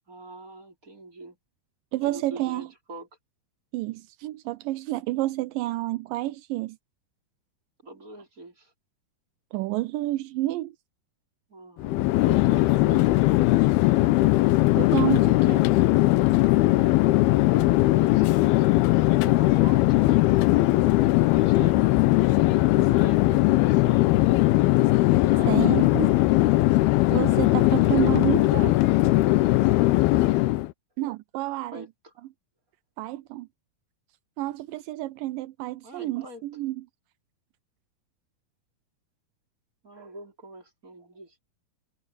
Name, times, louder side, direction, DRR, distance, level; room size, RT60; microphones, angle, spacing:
voice 1, 0.1-1.4 2.0-3.1 7.8-8.7 11.5-13.3 17.4-18.3 19.2-20.2 21.0-21.8 22.9-24.2 25.0-25.9 29.2-29.8 31.7-32.1 35.8-36.4 39.8-41.4, right 2 dB, 20° right, 5.5 m, -43 dB
voice 2, 1.9-2.7 3.7-6.8 9.5-10.7 14.8-15.7 25.5-26.1 27.1-28.8 31.0-31.8 33.0-33.5 34.4-36.8, right 17 dB, 85° right, 2.0 m, -29 dB
Chatter / Fixed-wing aircraft airplane, 11.8-30.7, left 18 dB, 85° left, 2.7 m, -20 dB
omnidirectional pair, 4.5 m